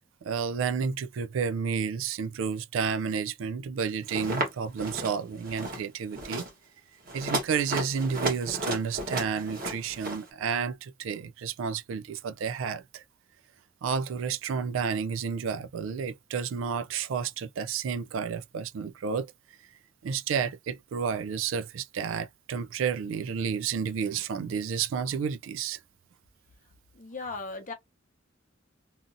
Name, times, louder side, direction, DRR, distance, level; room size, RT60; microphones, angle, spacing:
voice 1, 0.2-6.4 7.1-13.0 13.8-19.3 20.0-25.8, right 6 dB, 85° right, 0.3 m, -31 dB
sound 1, 4.1-4.5 4.8-5.1 5.4-5.8 6.1-6.5 7.1-10.2, right 1 dB, 50° right, 1.0 m, -33 dB
voice 2, 26.9-27.7, left 4 dB, 40° left, 0.7 m, -37 dB
2.8 x 2.5 x 2.5 m
head